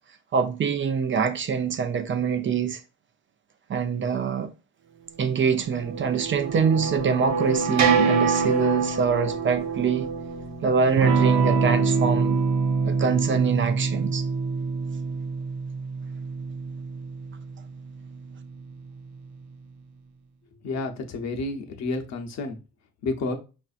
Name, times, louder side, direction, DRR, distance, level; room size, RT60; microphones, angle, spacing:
voice 1, 0.3-2.8 3.7-4.5 5.2-10.1 10.6-12.4 12.8-14.2, right 6 dB, 40° right, 0.5 m, -24 dB
sound 1, 5.5-11.3, right 5 dB, 65° right, 1.0 m, -26 dB
Electric guitar / Strum, 11.0-19.3, right 5 dB, 90° right, 0.6 m, -25 dB
voice 2, 20.6-22.6 23.0-23.4, left 3 dB, 60° left, 0.8 m, -30 dB
4.5 x 2.6 x 2.4 m
cardioid pair, 90°, 30 cm